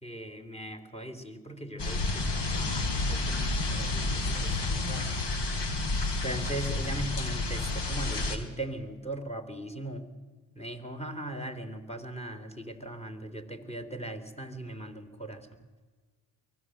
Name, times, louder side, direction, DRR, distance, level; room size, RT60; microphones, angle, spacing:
voice 1, 0.0-5.2 6.2-10.1 10.5-15.6, right 1 dB, 15° left, 9 dB, 3.5 m, -39 dB
sound 1, 1.8-8.4, left 2 dB, 55° left, 3.6 m, -30 dB
23.5 x 18.0 x 7.9 m, 1.4 s
supercardioid pair, 60°, 50 cm